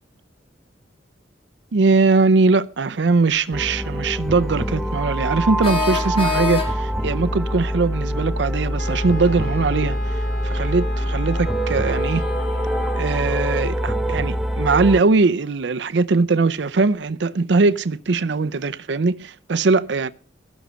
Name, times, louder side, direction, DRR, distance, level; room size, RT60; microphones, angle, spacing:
voice 1, 1.7-12.2 13.0-20.1, right 3 dB, 70° right, 0.6 m, -20 dB
sound 1, 3.3-3.4 5.6-7.0, left 6 dB, 30° left, 2.8 m, -26 dB
sound 2, 3.5-15.0, equal, ahead, 0.8 m, -24 dB
Wind instrument woodwind instrument, 8.8-13.3, left 2 dB, 55° left, 2.2 m, -35 dB
15.5 x 6.3 x 7.9 m
head